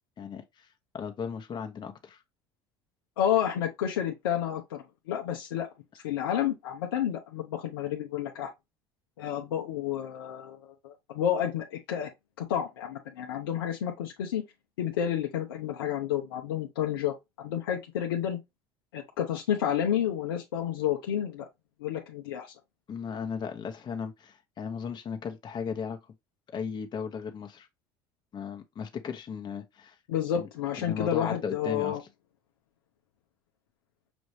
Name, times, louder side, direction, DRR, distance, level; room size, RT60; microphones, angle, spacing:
voice 1, 0.2-0.7 0.9-2.2 22.9-26.0 26.5-27.7 28.3-30.0 30.3-30.5 30.8-32.0, left 6 dB, 40° left, 0.9 m, -36 dB
voice 2, 3.2-5.7 6.0-8.5 9.2-12.1 12.4-14.4 14.8-18.4 18.9-21.5 21.8-22.5 30.1-32.0, left 10 dB, 90° left, 0.7 m, -30 dB
6.1 x 2.6 x 3.1 m
hypercardioid pair, 75°, 12 cm